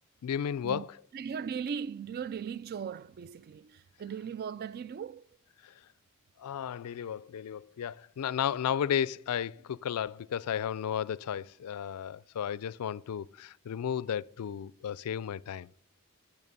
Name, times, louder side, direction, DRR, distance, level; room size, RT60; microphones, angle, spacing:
voice 1, 0.2-1.0 5.6-5.7 6.4-15.7, left 8 dB, 90° left, 0.4 m, -34 dB
voice 2, 1.1-5.3, right 7 dB, 45° right, 0.3 m, -38 dB
11.0 x 6.9 x 5.4 m
head